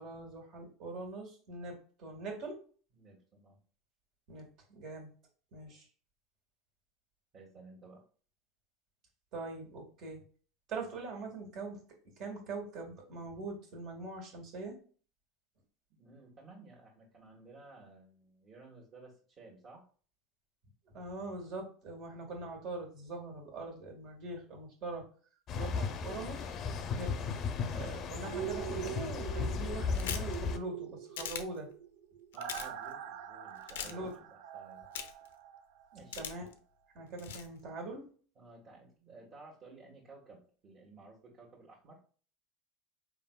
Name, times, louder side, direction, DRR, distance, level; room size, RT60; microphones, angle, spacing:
voice 1, 0.0-2.6 4.3-5.1 5.5-5.9 9.3-10.2 10.7-11.8 12.0-14.8 20.9-25.1 25.5-26.5 26.9-27.3 27.7-31.7 33.8-34.1 36.2-36.5 36.9-38.0, right 3 dB, 55° right, 2 dB, 2.0 m, -42 dB
voice 2, 2.9-3.6 7.3-8.0 15.9-19.8 32.3-35.0 35.9-36.3 38.3-42.0, right 3 dB, 35° right, -5 dB, 1.6 m, -55 dB
sound 1, 25.5-30.6, left 5 dB, 40° left, 0.6 m, -35 dB
sound 2, 28.2-36.1 36.5-36.6, right 10 dB, 75° right, 0.5 m, -44 dB
sound 3, 29.9-30.3 31.2-31.4 32.3-32.7 33.7-33.9 34.9-35.3 36.1-36.5 37.2-37.5, left 9 dB, 90° left, 0.6 m, -39 dB
4.6 x 3.7 x 2.3 m, 0.41 s
supercardioid pair, 110°, 0 cm